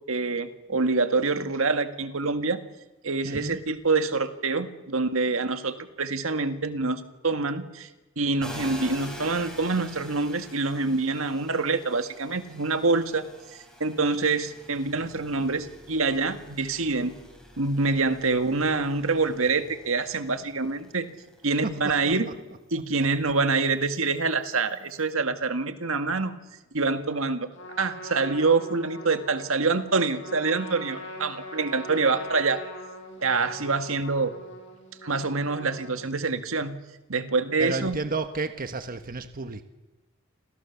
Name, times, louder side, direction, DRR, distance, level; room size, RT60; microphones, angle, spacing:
voice 1, 0.1-2.6 3.0-7.9 8.2-13.2 13.5-17.2 17.6-21.1 21.4-22.3 22.7-26.3 26.7-27.5 27.8-32.6 33.2-34.4 35.0-36.8 37.1-38.0, right 3 dB, 75° right, 8 dB, 1.9 m, -26 dB
voice 2, 3.2-3.6 21.6-21.7 37.6-39.6, right 3 dB, 45° right, 8 dB, 1.3 m, -31 dB
sound 1, 8.4-21.8 22.2-25.1, equal, 5° left, 6.7 m, -46 dB
Trumpet, 27.5-36.2, left 1 dB, 60° left, 6.0 m, -41 dB
29.5 x 27.0 x 7.2 m, 1.1 s
head